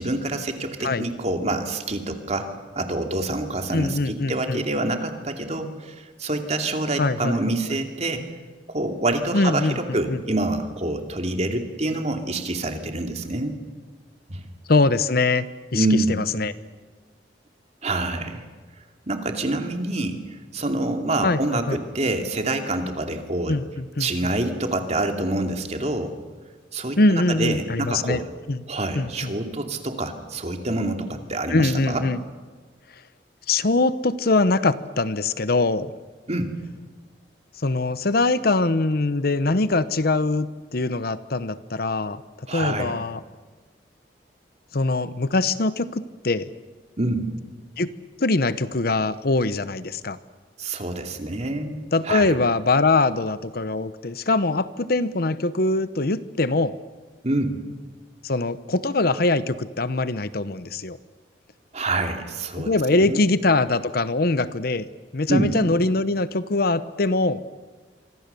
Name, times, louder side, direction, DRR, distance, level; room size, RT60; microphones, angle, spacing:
voice 1, 0.0-8.2 8.7-13.6 14.3-14.4 15.7-16.2 17.8-18.4 19.1-23.5 24.0-26.2 26.7-28.3 28.7-32.0 36.3-36.5 42.5-42.9 47.0-47.3 50.6-52.3 57.2-57.6 61.7-62.7 63.0-63.2 65.3-65.5, right 2 dB, 40° right, 5 dB, 2.7 m, -26 dB
voice 2, 3.7-4.6 7.0-7.4 7.7-7.8 9.3-10.2 14.7-15.4 15.7-16.5 21.2-21.8 23.5-24.1 27.0-28.6 28.9-29.3 31.5-32.2 33.5-35.9 37.6-42.2 42.5-43.2 44.7-46.5 47.8-47.9 48.2-50.2 51.9-56.8 58.2-61.0 62.6-64.9 65.1-67.4, left 2 dB, 60° left, 15 dB, 0.9 m, -23 dB
26.5 x 25.0 x 6.9 m, 1.4 s
head